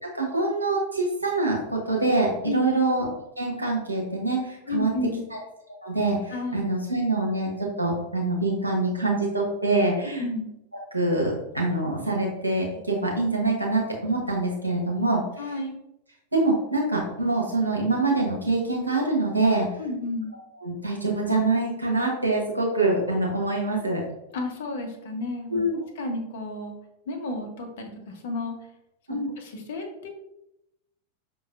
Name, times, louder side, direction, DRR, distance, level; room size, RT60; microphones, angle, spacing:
voice 1, 0.0-3.1 3.4-4.9 5.8-10.2 10.9-15.2 15.5-15.6 16.3-19.7 20.6-24.0 25.5-25.8 29.1-29.3, right 2 dB, 85° right, -2 dB, 1.1 m, -25 dB
voice 2, 4.7-5.2 6.3-6.6 10.2-10.5 15.4-15.8 19.8-20.3 24.3-25.6 25.9-26.7 27.1-28.6 29.1-30.1, left 2 dB, 55° left, 3 dB, 0.8 m, -32 dB
5.7 x 3.0 x 2.5 m, 0.86 s
figure-of-eight pair, 90°, 0 cm